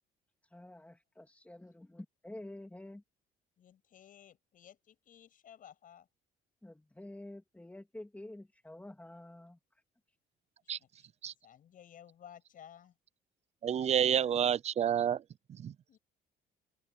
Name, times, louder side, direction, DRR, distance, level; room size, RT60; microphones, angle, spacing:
voice 1, 0.5-3.0 6.6-9.6, left 1 dB, 10° left, 2.6 m, -49 dB
voice 2, 3.6-6.1 10.6-11.1 11.4-13.0 15.9-16.0, left 9 dB, 55° left, 7.8 m, -56 dB
voice 3, 13.6-15.2 15.5-15.7, right 9 dB, 40° right, 0.5 m, -29 dB
cardioid pair, 110°, 17 cm